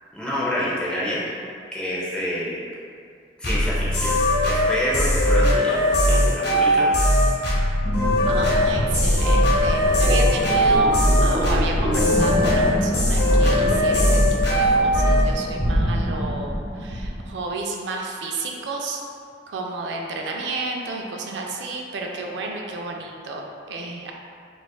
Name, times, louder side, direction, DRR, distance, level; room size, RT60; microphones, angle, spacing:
voice 1, 0.1-1.4 1.7-2.6 3.4-4.2 4.4-7.0, equal, 5° left, -8 dB, 0.6 m, -27 dB
sound 1, 3.4-15.3, equal, 60° left, 0.7 m, -19 dB
sound 2, 7.8-17.3, equal, 50° right, 1.0 m, -25 dB
voice 2, 8.3-10.9 11.2-19.0 19.5-24.1, right 3 dB, 70° right, 0 dB, 0.3 m, -31 dB
4.2 x 2.4 x 2.3 m, 2.4 s
head